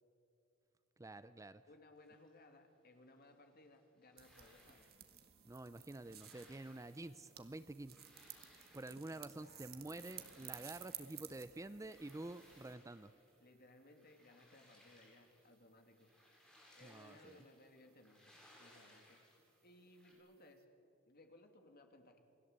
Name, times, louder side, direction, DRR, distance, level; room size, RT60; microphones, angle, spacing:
voice 1, 1.0-1.6 5.4-8.0 8.6-13.1 16.8-17.5, right 2 dB, 15° right, 13 dB, 0.5 m, -49 dB
voice 2, 1.7-4.9 9.1-9.9 13.4-16.1 16.7-19.2 19.6-20.7 21.1-22.2, left 2 dB, 50° left, 5 dB, 2.8 m, -63 dB
sound 1, 2.0-20.1, left 1 dB, 5° left, 7.1 m, -67 dB
sound 2, 4.2-12.8, right 11 dB, 50° right, 1.8 m, -55 dB
28.5 x 20.5 x 8.2 m, 2.6 s
head